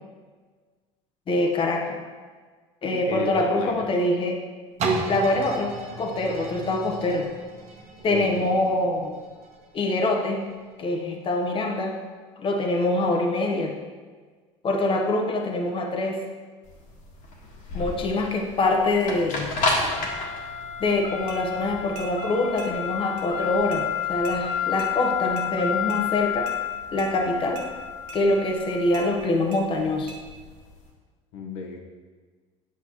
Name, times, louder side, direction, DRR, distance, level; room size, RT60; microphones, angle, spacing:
voice 1, 1.3-2.0 2.8-4.4 5.1-7.3 8.0-9.2 9.7-10.5 10.8-12.0 12.4-13.7 14.6-16.3 17.7-19.5 20.8-26.5 26.9-27.7 28.1-30.1, left 2 dB, 35° left, 2 dB, 0.9 m, -24 dB
voice 2, 2.8-3.9 8.1-8.5 31.3-31.8, left 3 dB, 75° left, 2 dB, 1.1 m, -33 dB
sound 1, 4.8-10.5 11.1-11.2, right 3 dB, 45° right, 1.2 m, -33 dB
sound 2, 16.7-30.8, left 6 dB, 60° left, 1.7 m, -30 dB
sound 3, 21.3-21.4 22.0-22.1 22.6-22.7 23.2-23.3 23.7-23.8 24.2-24.4 24.8-24.9 25.4-25.5 25.9-26.0 26.5-26.6 27.0-27.1 27.6-27.7 28.1-28.2 28.9-29.1 29.5-29.6 30.1-30.2, right 5 dB, 80° right, 1.2 m, -42 dB
8.4 x 5.8 x 3.0 m, 1.5 s
supercardioid pair, 85°, 15 cm